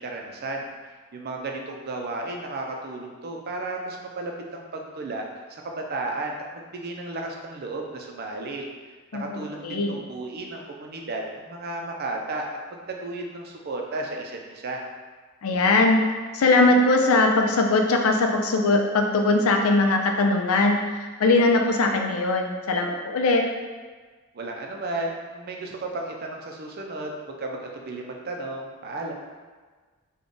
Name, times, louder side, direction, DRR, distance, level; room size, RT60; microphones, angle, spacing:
voice 1, 0.0-5.2 5.6-8.7 9.1-12.5 12.9-14.8 24.3-29.1, right 2 dB, 45° right, 1 dB, 0.5 m, -33 dB
voice 2, 9.1-10.0 15.4-16.0 16.3-23.4, left 2 dB, 85° left, 3 dB, 0.4 m, -21 dB
3.5 x 2.3 x 3.8 m, 1.4 s
head